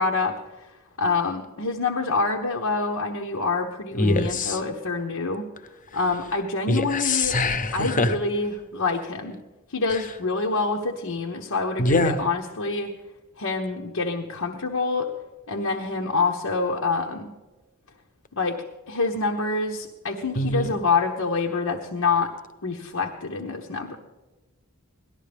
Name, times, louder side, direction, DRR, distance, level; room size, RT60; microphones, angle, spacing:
voice 1, 0.0-5.5 5.9-7.4 7.7-9.4 9.7-12.9 13.4-15.1 15.5-17.3 18.3-22.3 22.6-24.0, left 3 dB, 85° left, 1 dB, 1.0 m, -26 dB
voice 2, 4.0-4.5 6.7-8.1 11.8-12.2 20.4-20.7, left 2 dB, 40° left, 10 dB, 0.9 m, -23 dB
18.0 x 13.0 x 3.4 m, 1.2 s
head